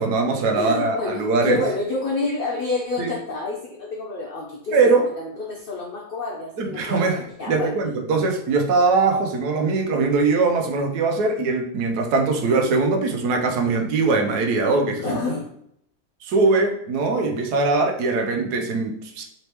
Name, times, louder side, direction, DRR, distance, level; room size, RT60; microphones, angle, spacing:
voice 1, 0.0-1.6 3.0-3.1 4.7-5.1 6.6-7.2 7.5-15.2 16.2-19.2, right 3 dB, 90° right, 3 dB, 1.3 m, -21 dB
voice 2, 0.5-7.9 15.0-15.5, left 3 dB, 60° left, -1 dB, 0.6 m, -29 dB
4.0 x 3.3 x 3.0 m, 0.71 s
omnidirectional pair, 1.7 m